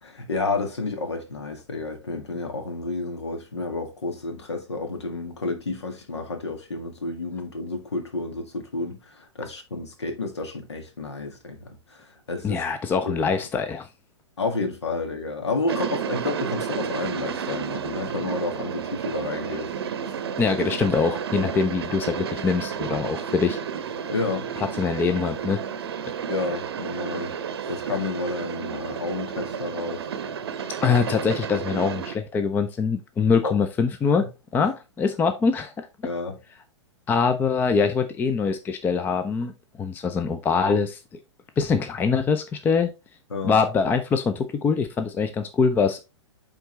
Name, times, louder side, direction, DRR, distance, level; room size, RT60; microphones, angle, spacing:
voice 1, 0.0-12.6 13.0-13.3 14.4-19.7 20.0-20.2 24.1-24.6 26.3-27.4 27.7-30.1 33.4-33.5 34.1-34.3 34.6-34.7 36.0-36.4 43.3-43.6, left 3 dB, 70° left, 1.7 m, -30 dB
voice 2, 12.4-13.9 20.4-23.6 24.6-25.6 30.8-34.2 34.5-35.9 37.1-39.5 39.8-41.0 41.6-42.9 43.4-46.0, left 5 dB, 15° left, 0.5 m, -23 dB
sound 1, 15.7-32.2, right 7 dB, 55° right, 0.8 m, -31 dB
8.9 x 3.7 x 3.2 m
figure-of-eight pair, 110°, 15 cm